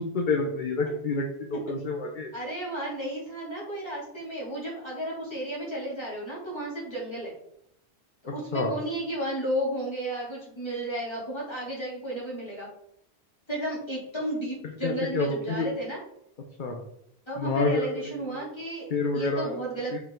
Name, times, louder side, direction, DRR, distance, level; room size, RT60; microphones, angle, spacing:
voice 1, 0.0-2.3 8.5-8.7 14.8-15.7 16.6-16.8 17.4-18.4 18.9-19.6 19.9-20.0, left 3 dB, 50° left, 2 dB, 1.0 m, -28 dB
voice 2, 2.3-7.3 8.2-12.7 13.5-16.0 17.3-19.9, right 1 dB, 25° left, -6 dB, 2.8 m, -33 dB
5.6 x 4.7 x 3.8 m, 0.74 s
omnidirectional pair, 1.1 m